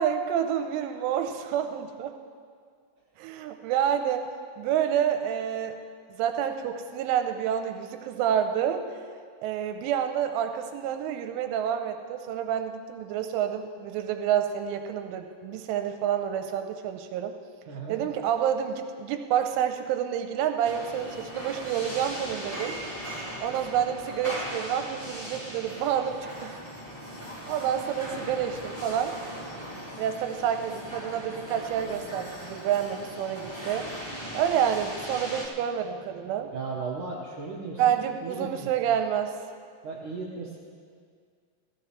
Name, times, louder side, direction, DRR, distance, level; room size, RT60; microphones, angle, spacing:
voice 1, 0.0-2.1 3.2-4.3 4.6-5.8 6.1-8.8 9.4-17.4 17.9-22.8 23.4-26.6 27.0-29.1 30.0-33.9 34.3-36.5 37.8-39.3, right 9 dB, 90° right, 6 dB, 3.1 m, -28 dB
voice 2, 17.7-18.0 36.5-38.7 39.8-40.6, right 4 dB, 70° right, -5 dB, 1.9 m, -36 dB
sound 1, 20.6-35.4, equal, 45° left, 0.6 m, -39 dB
17.5 x 16.0 x 3.1 m, 2.1 s
omnidirectional pair, 5.5 m